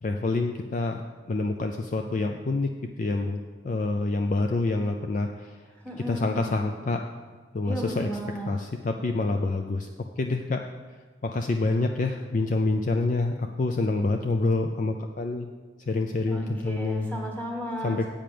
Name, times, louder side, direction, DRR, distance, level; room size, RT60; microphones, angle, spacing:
voice 1, 0.0-1.0 1.3-5.6 6.1-7.0 7.5-8.1 8.5-9.9 10.2-10.6 11.2-15.5 15.9-17.2 17.8-18.1, left 2 dB, 40° left, 4 dB, 0.4 m, -27 dB
voice 2, 5.8-6.5 7.6-8.5 16.3-18.1, equal, 10° left, -2 dB, 1.6 m, -34 dB
8.6 x 5.1 x 7.6 m, 1.4 s
head